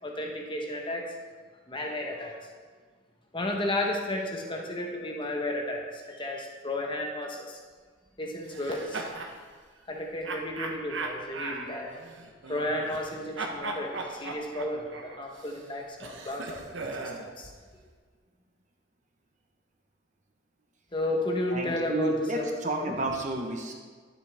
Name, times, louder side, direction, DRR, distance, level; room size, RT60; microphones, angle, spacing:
voice 1, 0.0-1.1 1.7-2.4 3.3-7.6 8.2-9.0 9.9-12.0 12.5-17.1 17.4-17.5 20.9-23.0, left 1 dB, 25° left, 1 dB, 1.1 m, -33 dB
sound 1, 8.5-9.4 10.2-13.1 13.4-17.3, right 3 dB, 65° right, 1.0 m, -38 dB
voice 2, 21.5-23.7, right 1 dB, 35° right, 1 dB, 1.2 m, -31 dB
11.5 x 7.7 x 3.5 m, 1.5 s
head